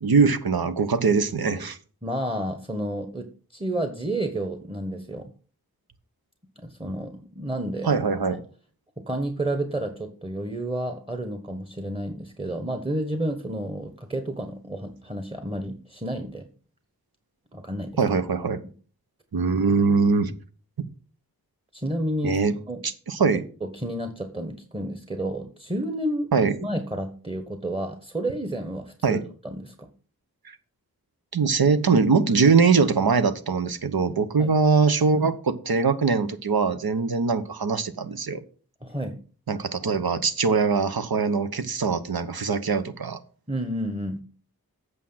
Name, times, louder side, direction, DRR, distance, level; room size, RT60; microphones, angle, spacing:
voice 1, 0.0-1.8 7.8-8.4 18.0-18.6 19.3-20.3 20.8-20.9 22.2-22.5 22.8-23.4 26.3-26.5 29.0-29.2 30.4-30.6 31.3-38.4 39.5-43.2, right 5 dB, 75° right, 11 dB, 1.0 m, -22 dB
voice 2, 2.0-5.3 6.6-7.9 9.0-16.5 17.5-18.0 21.7-22.4 22.7-22.8 23.6-26.3 26.6-29.9 34.4-34.5 38.8-39.2 43.5-44.2, right 1 dB, 15° right, 8 dB, 1.2 m, -30 dB
8.3 x 6.3 x 5.7 m, 0.40 s
wide cardioid pair, 55°, 37 cm